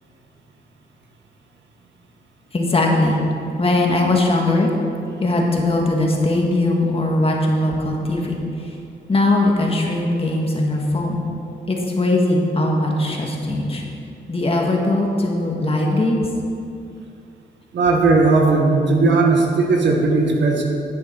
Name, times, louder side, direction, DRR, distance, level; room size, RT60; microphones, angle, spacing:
voice 1, 2.5-3.2 3.6-4.7 5.2-8.7 9.1-11.2 11.7-13.8 14.3-16.3, left 2 dB, 30° left, -1 dB, 1.6 m, -20 dB
voice 2, 17.7-20.6, right 3 dB, 85° right, 1 dB, 1.5 m, -16 dB
10.5 x 8.9 x 4.5 m, 2.6 s
wide cardioid pair, 115°, 18 cm